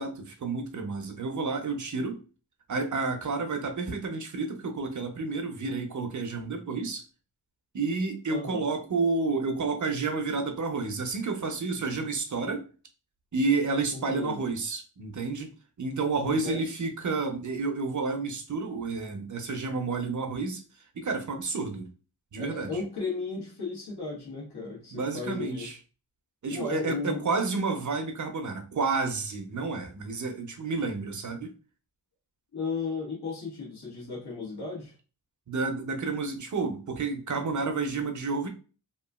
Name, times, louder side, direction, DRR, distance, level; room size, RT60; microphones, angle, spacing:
voice 1, 0.0-2.2 2.7-7.0 7.7-12.7 13.3-20.6 20.9-21.9 22.3-22.7 24.9-25.7 26.4-31.5 35.5-38.5, right 4 dB, 45° right, 0.7 m, -30 dB
voice 2, 8.3-8.7 13.9-14.4 16.1-16.7 22.4-25.7 26.5-27.2 32.5-34.9, left 4 dB, 65° left, 1.3 m, -35 dB
3.0 x 2.4 x 2.3 m
cardioid pair, 55°, 42 cm